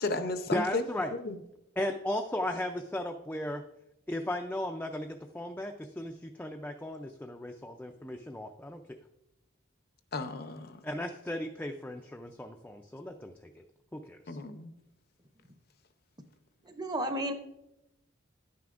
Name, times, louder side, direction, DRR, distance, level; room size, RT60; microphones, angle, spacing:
voice 1, 0.0-0.8 1.2-1.3 10.1-10.8 14.3-14.7, left 3 dB, 50° left, 9 dB, 0.6 m, -33 dB
voice 2, 0.5-1.1 1.8-3.6 4.1-8.8 10.8-13.3 13.9-14.4, left 1 dB, 10° left, 4 dB, 0.4 m, -36 dB
voice 3, 16.7-17.3, right 1 dB, 20° right, 6 dB, 0.7 m, -32 dB
10.5 x 9.3 x 2.5 m, 0.86 s
head